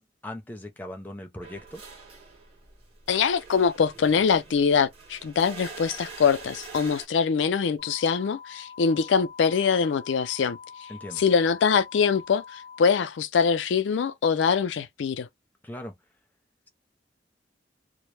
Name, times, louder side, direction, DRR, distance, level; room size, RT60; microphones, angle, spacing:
voice 1, 0.0-1.8 10.9-11.2 15.6-16.0, left 1 dB, 10° left, 0.5 m, -39 dB
sound 1, 1.4-7.1, right 4 dB, 35° right, 0.8 m, -44 dB
voice 2, 3.1-10.6 11.2-15.3, left 6 dB, 90° left, 0.4 m, -23 dB
sound 2, 7.8-12.8, left 6 dB, 60° right, 0.7 m, -45 dB
2.1 x 2.0 x 3.1 m
head